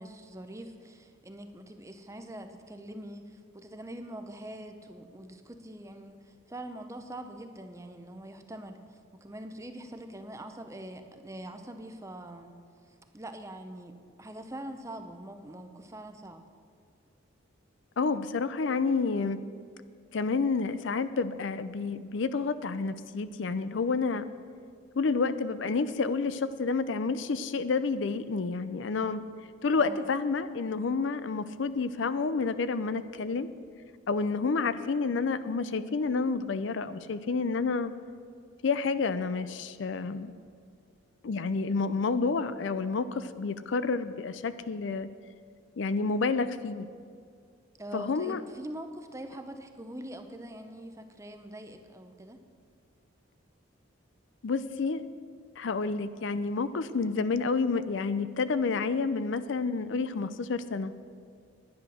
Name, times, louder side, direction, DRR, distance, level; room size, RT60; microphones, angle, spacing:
voice 1, 0.0-12.5 12.9-16.4 29.8-30.0 47.8-52.4, right 1 dB, 15° right, 7 dB, 0.7 m, -43 dB
voice 2, 18.0-19.4 20.1-24.3 25.0-29.2 29.6-33.5 34.1-37.9 38.6-40.3 41.2-45.1 45.8-46.9 47.9-48.4 54.4-55.0 55.6-60.9, left 4 dB, 65° left, 13 dB, 0.5 m, -29 dB
10.5 x 9.9 x 6.3 m, 2.2 s
head